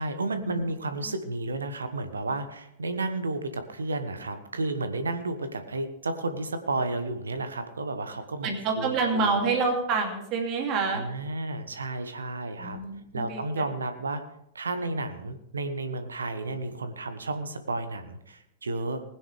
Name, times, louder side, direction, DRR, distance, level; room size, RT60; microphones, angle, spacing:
voice 1, 0.0-8.5 8.7-9.4 10.9-12.8 13.1-14.2 14.5-19.0, right 2 dB, 70° right, 10 dB, 1.1 m, -32 dB
voice 2, 8.4-11.1 12.6-13.4, right 4 dB, 35° right, 2 dB, 2.5 m, -27 dB
19.5 x 10.0 x 3.3 m, 0.79 s
figure-of-eight pair, 95°, 0 cm